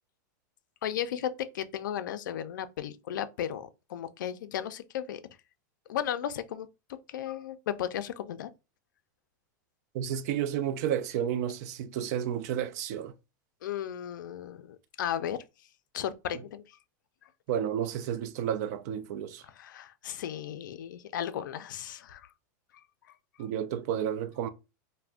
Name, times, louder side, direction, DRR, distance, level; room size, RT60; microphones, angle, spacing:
voice 1, 0.8-5.2 5.9-8.5 13.6-15.4 15.9-16.6 19.6-22.3, left 10 dB, 85° left, 0.4 m, -35 dB
voice 2, 9.9-13.1 17.5-19.4 23.4-24.5, right 9 dB, 60° right, 0.4 m, -31 dB
2.4 x 2.1 x 3.4 m
supercardioid pair, 135°, 10 cm